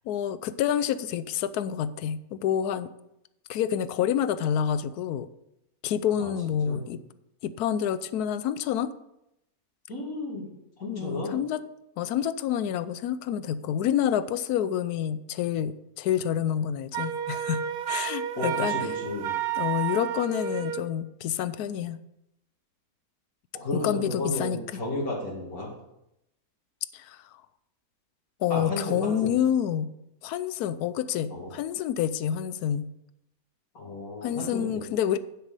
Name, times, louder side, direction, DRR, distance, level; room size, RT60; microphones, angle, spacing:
voice 1, 0.1-2.9 3.5-5.3 5.8-7.0 7.4-8.9 10.9-11.6 12.0-18.7 19.6-22.0 23.7-24.6 26.9-27.2 28.4-29.9 30.2-32.9 34.2-35.2, left 9 dB, 85° left, 14 dB, 1.1 m, -28 dB
voice 2, 6.2-6.9 9.9-10.5 10.8-11.3 18.3-19.3 23.5-25.7 28.5-29.3 31.3-31.5 33.7-34.8, left 1 dB, 70° left, -4 dB, 2.8 m, -33 dB
Wind instrument woodwind instrument, 16.9-20.9, right 9 dB, 75° right, 1.2 m, -31 dB
9.5 x 8.1 x 5.4 m, 0.83 s
omnidirectional pair, 1.6 m